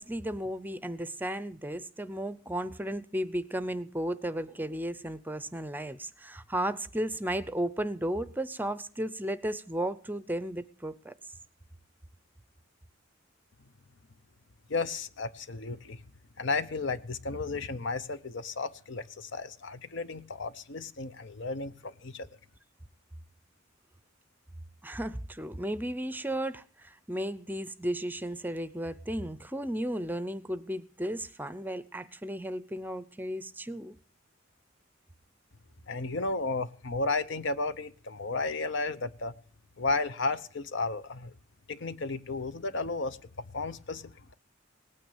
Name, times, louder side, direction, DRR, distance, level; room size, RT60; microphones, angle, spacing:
voice 1, 0.0-11.1 24.8-33.9, right 1 dB, 10° right, 0.6 m, -34 dB
voice 2, 14.7-16.0 16.4-22.3 35.9-39.3 39.8-41.3 41.7-43.2 43.5-44.3, left 3 dB, 65° left, 0.8 m, -33 dB
18.5 x 9.3 x 7.1 m
head